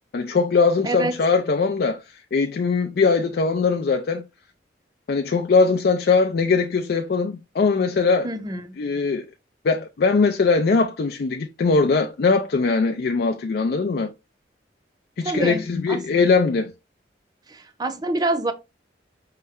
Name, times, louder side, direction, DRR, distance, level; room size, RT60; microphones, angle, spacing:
voice 1, 0.1-2.0 2.3-4.2 5.1-8.3 8.8-9.2 9.6-14.1 15.2-16.7, left 4 dB, 55° left, 0.4 m, -21 dB
voice 2, 8.2-8.7 15.2-15.6 15.9-16.0 17.5-18.5, right 2 dB, 20° right, 0.5 m, -26 dB
5.5 x 2.1 x 3.5 m
head